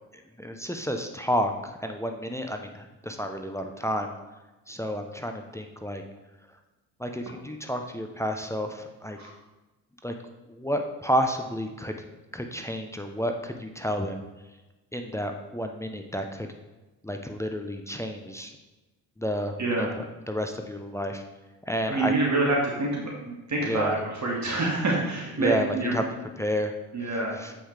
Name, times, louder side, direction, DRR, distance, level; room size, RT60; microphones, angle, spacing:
voice 1, 0.1-4.1 4.7-6.0 7.0-9.2 10.0-10.1 10.5-11.9 12.3-14.2 14.9-16.5 17.0-18.5 19.2-21.2 21.7-22.1 23.6-24.0 25.4-26.0 26.4-26.7 27.0-27.5, equal, 5° left, 5 dB, 0.8 m, -31 dB
voice 2, 21.9-25.9 26.9-27.4, right 2 dB, 40° right, -3 dB, 2.2 m, -27 dB
7.8 x 5.5 x 3.4 m, 1.1 s
hypercardioid pair, 50°, 45 cm